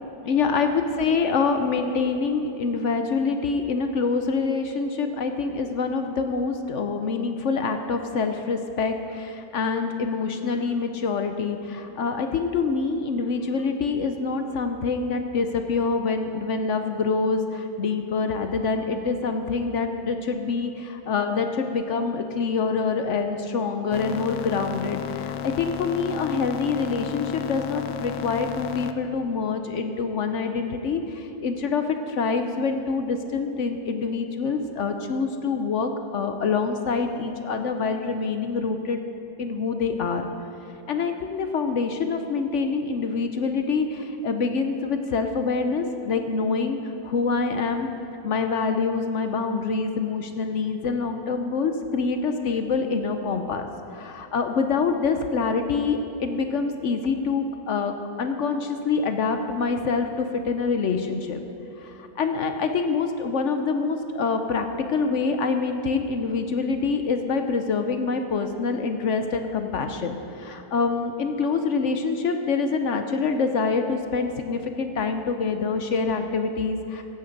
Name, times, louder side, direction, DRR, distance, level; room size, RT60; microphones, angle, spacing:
voice 1, 0.2-39.0 39.4-40.3 40.9-46.8 47.0-47.9 48.2-61.4 61.8-77.0, left 4 dB, 60° left, 6 dB, 0.8 m, -26 dB
sound 1, 23.9-28.9, left 10 dB, 80° left, 1.2 m, -33 dB
15.0 x 9.2 x 5.2 m, 3.0 s
omnidirectional pair, 1.9 m